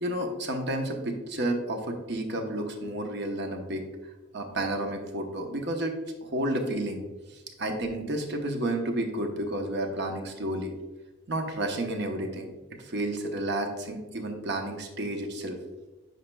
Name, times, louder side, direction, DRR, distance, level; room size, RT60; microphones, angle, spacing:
voice 1, 0.0-3.8 4.3-7.0 7.3-10.7 11.3-12.5 12.8-15.6, right 1 dB, 55° right, 4 dB, 0.9 m, -31 dB
9.2 x 5.3 x 2.3 m, 1.2 s
head